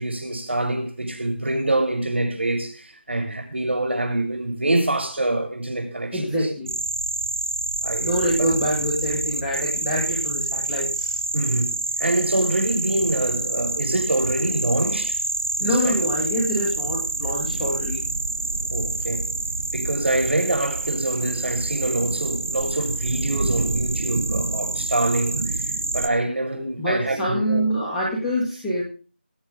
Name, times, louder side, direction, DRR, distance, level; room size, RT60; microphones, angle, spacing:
voice 1, 0.0-6.5 7.8-8.5 11.3-15.2 15.6-16.1 18.7-19.3 19.7-27.7, right 2 dB, 70° right, 7.3 m, -25 dB
voice 2, 6.1-6.7 8.0-11.2 15.6-18.0 26.8-28.8, equal, ahead, 1.3 m, -25 dB
sound 1, 6.7-26.1, right 3 dB, 15° right, 0.5 m, -27 dB
21.0 x 8.8 x 3.6 m
figure-of-eight pair, 180°, 6 cm